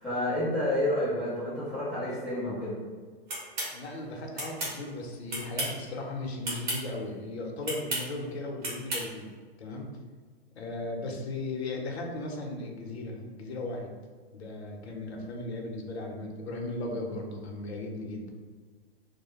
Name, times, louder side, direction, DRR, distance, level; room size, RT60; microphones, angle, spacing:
voice 1, 0.0-2.8, left 1 dB, ahead, -15 dB, 0.6 m, -29 dB
sound 1, 3.3-3.7 4.4-4.7 5.3-5.8 6.4-6.8 7.6-8.0 8.6-9.0, right 1 dB, 50° right, 1.1 m, -32 dB
voice 2, 3.7-9.3 9.6-9.9 10.6-14.0 14.3-18.3, left 2 dB, 80° left, 2 dB, 0.7 m, -36 dB
2.3 x 2.2 x 3.1 m, 1.5 s
hypercardioid pair, 170°, 32 cm